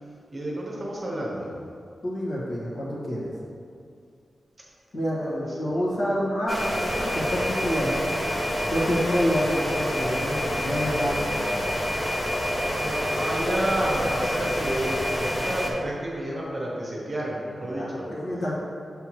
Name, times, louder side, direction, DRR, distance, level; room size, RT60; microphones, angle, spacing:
voice 1, 0.3-1.5 5.6-5.8 12.5-18.1, right 1 dB, 30° right, -4 dB, 1.0 m, -30 dB
voice 2, 2.0-3.3 4.9-8.2 8.7-11.6 17.6-18.5, equal, 65° left, -6 dB, 1.4 m, -28 dB
sound 1, 6.5-15.7, equal, 10° left, 0.5 m, -27 dB
5.8 x 5.7 x 3.0 m, 2.3 s
wide cardioid pair, 165°, 0 cm